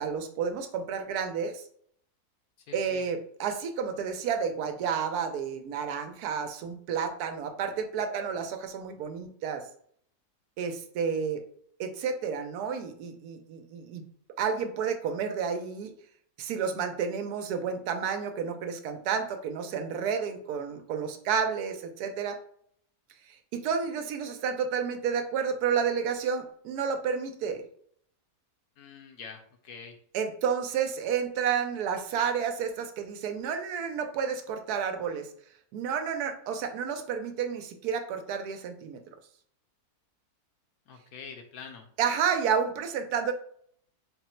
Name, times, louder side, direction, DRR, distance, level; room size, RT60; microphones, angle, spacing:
voice 1, 0.0-1.6 2.7-9.6 10.6-11.4 11.8-14.0 14.4-15.9 16.4-22.4 23.3-27.6 30.1-35.3 35.7-39.0 42.0-43.3, right 6 dB, 75° right, 7 dB, 1.1 m, -31 dB
voice 2, 2.7-3.0 28.8-30.0 40.9-41.9, left 6 dB, 70° left, 4 dB, 1.0 m, -45 dB
3.8 x 2.0 x 4.3 m, 0.62 s
omnidirectional pair, 1.7 m